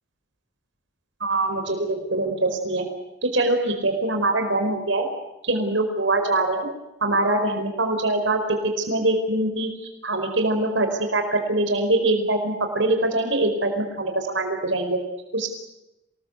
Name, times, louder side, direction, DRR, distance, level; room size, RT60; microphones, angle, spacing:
voice 1, 1.2-2.8 3.2-5.1 5.4-6.7 7.0-8.4 8.8-9.7 10.0-15.0 15.3-15.5, right 2 dB, 75° right, 5 dB, 4.8 m, -23 dB
27.5 x 20.0 x 8.2 m, 0.95 s
head